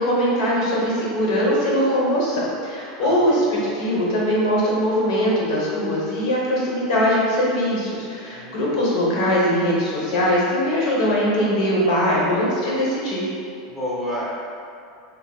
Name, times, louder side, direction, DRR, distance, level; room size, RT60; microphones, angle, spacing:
voice 1, 0.0-13.2, equal, 70° left, -5 dB, 1.1 m, -21 dB
voice 2, 3.0-3.7 8.3-9.0 13.7-14.3, equal, 5° left, -9 dB, 0.7 m, -31 dB
6.0 x 2.0 x 2.3 m, 2.4 s
supercardioid pair, 135°, 3 cm